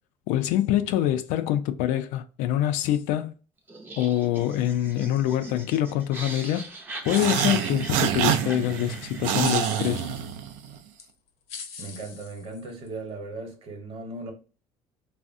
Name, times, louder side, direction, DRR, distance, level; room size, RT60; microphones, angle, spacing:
voice 1, 0.3-3.3 4.0-6.7 7.1-10.0, left 12 dB, 80° left, 0.4 m, -25 dB
Laughter, 3.7-9.5, right 2 dB, 15° right, 0.5 m, -40 dB
sound 1, 7.1-8.2 9.4-10.4 11.0-11.1 11.5-12.9, left 6 dB, 55° left, 0.8 m, -41 dB
sound 2, 7.1-10.8, right 9 dB, 85° right, 0.4 m, -26 dB
voice 2, 11.8-14.3, right 3 dB, 50° right, 0.9 m, -37 dB
3.4 x 2.0 x 2.5 m
cardioid pair, 140°, 13 cm